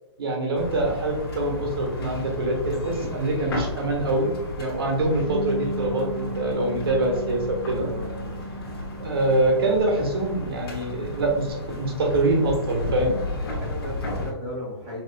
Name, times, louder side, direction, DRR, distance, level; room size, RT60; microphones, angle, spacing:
voice 1, 0.2-7.9 9.0-13.2, right 2 dB, 60° right, 1 dB, 1.3 m, -24 dB
sound 1, 0.6-14.3, left 2 dB, 60° left, 1.5 m, -34 dB
Bass guitar, 5.3-10.0 10.3-11.5, right 1 dB, 85° right, 0.8 m, -35 dB
voice 2, 7.8-8.4 13.4-15.0, left 1 dB, 15° right, -9 dB, 0.9 m, -36 dB
6.0 x 2.7 x 2.3 m, 1.0 s
hypercardioid pair, 175°, 14 cm